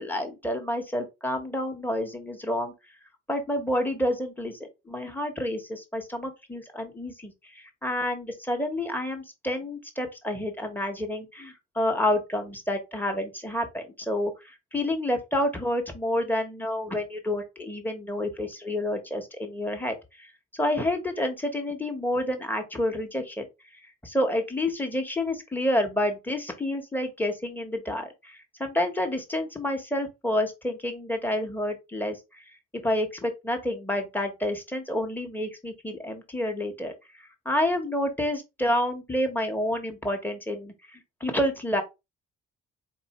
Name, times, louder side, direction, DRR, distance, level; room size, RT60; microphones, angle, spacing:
voice 1, 0.0-2.7 3.3-4.5 4.9-7.3 7.8-14.3 14.7-19.9 20.6-23.5 24.0-32.2 32.8-36.9 37.4-40.7 41.2-41.8, left 1 dB, 5° left, 1.1 m, -29 dB
4.3 x 2.6 x 4.2 m
cardioid pair, 90°, 30 cm